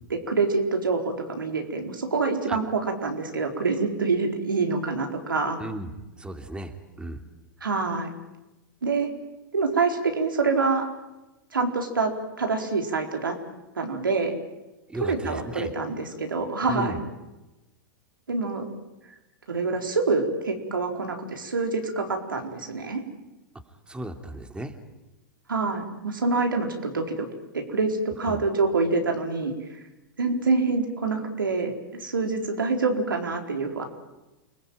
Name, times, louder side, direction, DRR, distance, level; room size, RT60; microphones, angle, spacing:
voice 1, 0.3-5.6 7.6-8.1 8.8-9.1 9.5-10.9 11.5-12.1 12.4-13.3 13.7-14.3 15.0-17.0 18.3-18.7 19.5-23.0 25.5-27.3 27.5-29.5 30.2-33.8, right 4 dB, 90° right, 3 dB, 4.4 m, -26 dB
voice 2, 5.6-5.9 6.2-7.2 14.9-15.7 16.6-17.0 23.9-24.7 28.3-28.4, right 1 dB, 10° right, 6 dB, 2.8 m, -35 dB
29.0 x 21.0 x 9.2 m, 1.0 s
hypercardioid pair, 105°, 11 cm